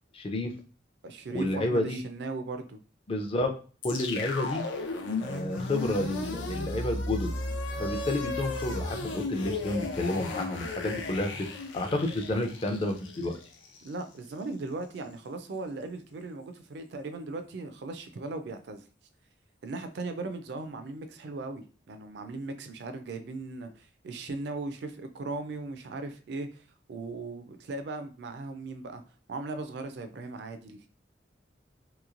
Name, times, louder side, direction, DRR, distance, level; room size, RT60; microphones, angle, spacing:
voice 1, 0.1-0.5 1.3-2.0 3.1-3.6 3.8-4.7 5.2-7.3 7.8-11.5 11.7-13.4, left 1 dB, 30° left, 5 dB, 0.4 m, -30 dB
voice 2, 1.0-2.8 13.8-18.9 19.6-26.6 26.9-29.0 29.3-30.9, right 3 dB, 65° right, 7 dB, 0.4 m, -38 dB
sound 1, 3.8-14.0, left 2 dB, 85° left, 0.5 m, -35 dB
3.0 x 2.9 x 2.5 m, 0.38 s
head